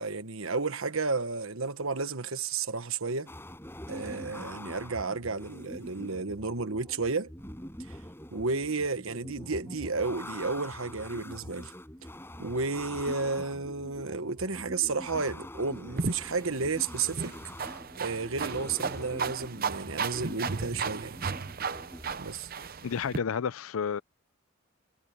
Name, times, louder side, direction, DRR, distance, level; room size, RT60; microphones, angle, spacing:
voice 1, 0.0-3.3 3.9-7.3 8.3-11.7 12.4-17.3 18.0-21.2 22.2-22.5, right 4 dB, 70° right, 1.3 m, -32 dB
sound 1, 3.3-22.1, left 1 dB, 10° left, 5.3 m, -44 dB
sound 2, 16.0-23.2, right 5 dB, 45° right, 0.7 m, -35 dB
voice 2, 22.8-24.0, left 6 dB, 75° left, 0.5 m, -31 dB
head